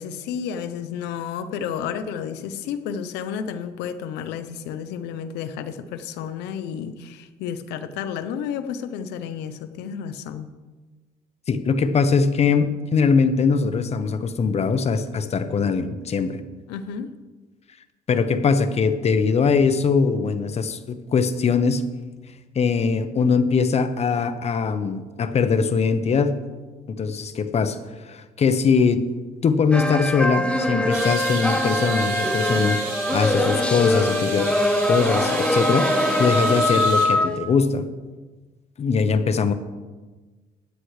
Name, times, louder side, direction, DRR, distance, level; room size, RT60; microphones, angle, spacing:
voice 1, 0.0-10.5 16.7-17.1, left 7 dB, 90° left, 11 dB, 0.8 m, -31 dB
voice 2, 11.5-16.4 18.1-21.8 22.5-26.3 26.9-27.8 28.0-29.0 29.4-34.6 34.9-35.9 36.2-37.9 38.8-39.5, left 5 dB, 40° left, 11 dB, 0.9 m, -21 dB
sound 1, 29.7-37.4, left 1 dB, 5° left, 1.1 m, -22 dB
sound 2, 30.9-37.1, right 4 dB, 60° right, 3.8 m, -33 dB
16.0 x 10.0 x 3.3 m, 1.3 s
cardioid pair, 110°, 17 cm